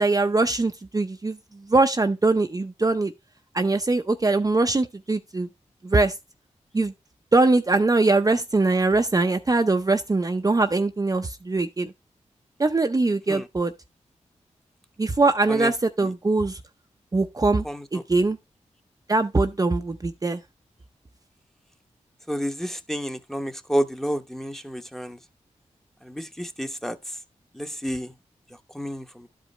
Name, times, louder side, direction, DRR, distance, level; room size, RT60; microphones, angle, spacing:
voice 1, 0.0-3.1 3.5-5.5 5.8-6.1 6.7-6.9 7.3-11.9 12.6-13.7 15.0-16.6 17.1-17.6 17.9-18.4 19.1-20.4, right 3 dB, 30° right, 0.6 m, -22 dB
voice 2, 22.3-25.2 26.0-27.0 27.5-28.1 28.7-29.3, equal, 5° left, 1.0 m, -30 dB
12.0 x 5.0 x 3.2 m
cardioid pair, 65°, 12 cm